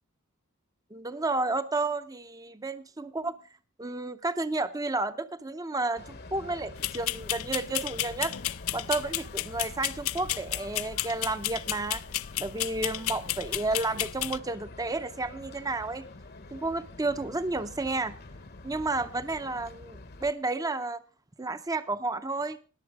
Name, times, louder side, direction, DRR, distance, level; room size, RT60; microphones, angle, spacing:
voice 1, 0.9-3.4 3.8-8.3 8.7-12.0 12.4-16.0 16.5-18.1 18.6-21.0 21.4-22.6, right 2 dB, 15° right, 11 dB, 0.6 m, -31 dB
sound 1, 6.0-20.3, left 2 dB, 50° left, 1.0 m, -46 dB
sound 2, 6.8-14.4, left 15 dB, 75° left, 0.5 m, -33 dB
19.0 x 7.1 x 4.7 m, 0.36 s
head